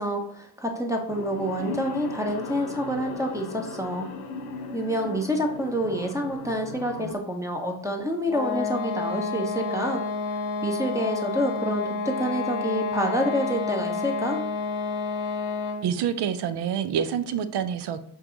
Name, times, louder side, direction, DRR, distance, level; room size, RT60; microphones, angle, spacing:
voice 1, 0.0-4.1 4.7-10.0 10.6-14.4, equal, 5° right, 1 dB, 0.7 m, -28 dB
sound 1, 1.1-7.2, left 4 dB, 85° left, 0.6 m, -37 dB
sound 2, 8.3-16.0, left 4 dB, 55° left, 0.8 m, -30 dB
voice 2, 15.8-18.0, right 8 dB, 55° right, 11 dB, 0.5 m, -27 dB
5.4 x 2.3 x 2.5 m, 0.75 s
hypercardioid pair, 40°, 49 cm